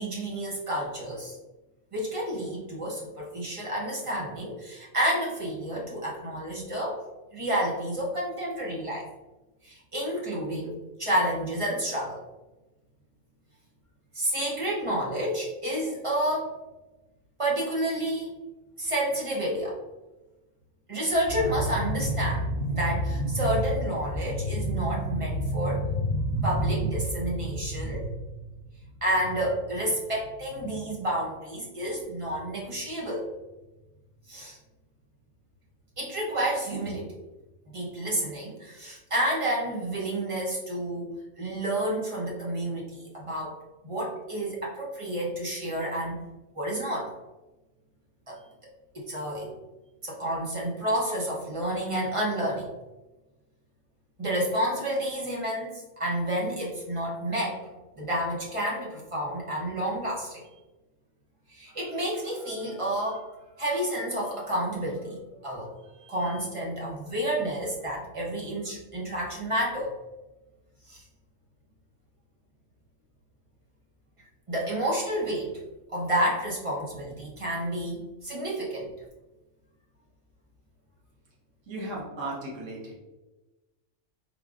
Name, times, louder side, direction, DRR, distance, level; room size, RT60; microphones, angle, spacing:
voice 1, 0.0-1.4 1.9-7.0 7.3-9.1 9.6-12.2 14.1-16.5 17.4-18.4 18.8-19.8 20.9-28.1 29.0-33.3 34.3-34.6 36.0-37.1 37.7-41.1 41.4-43.6 43.8-46.2 46.5-47.1 48.3-48.4 48.9-49.5 50.0-52.7 54.2-57.6 57.9-60.4 61.5-63.3 63.6-65.7 66.0-69.9 70.9-71.0 74.5-75.5 75.9-78.9, right 1 dB, 30° right, -4 dB, 0.7 m, -29 dB
voice 2, 81.7-83.0, right 2 dB, 80° right, -3 dB, 1.4 m, -36 dB
3.6 x 3.2 x 2.4 m, 1.1 s
omnidirectional pair, 1.3 m